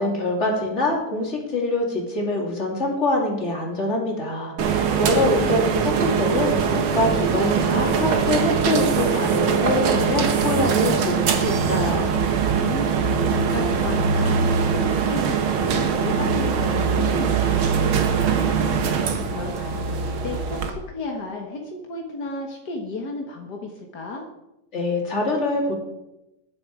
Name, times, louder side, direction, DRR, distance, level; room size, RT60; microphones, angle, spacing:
voice 1, 0.0-12.1 24.7-25.7, left 2 dB, 20° left, -1 dB, 2.8 m, -24 dB
sound 1, 4.6-20.7, right 6 dB, 60° right, 1.4 m, -22 dB
voice 2, 12.6-24.2, left 2 dB, 60° left, 1 dB, 1.0 m, -34 dB
20.5 x 7.6 x 4.8 m, 0.92 s
omnidirectional pair, 3.9 m